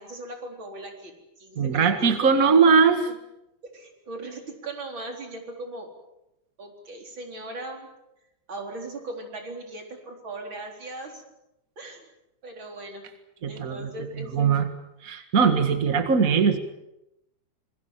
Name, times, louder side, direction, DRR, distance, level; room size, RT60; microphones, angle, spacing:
voice 1, 0.0-2.1 3.7-5.9 6.6-7.9 8.5-11.2 11.8-12.1 12.4-13.0 13.5-14.5, right 2 dB, 30° right, 3 dB, 4.5 m, -39 dB
voice 2, 1.5-3.1 13.4-14.7 15.0-16.6, right 5 dB, 55° right, 8 dB, 0.9 m, -21 dB
27.0 x 22.0 x 7.4 m, 0.86 s
omnidirectional pair, 4.4 m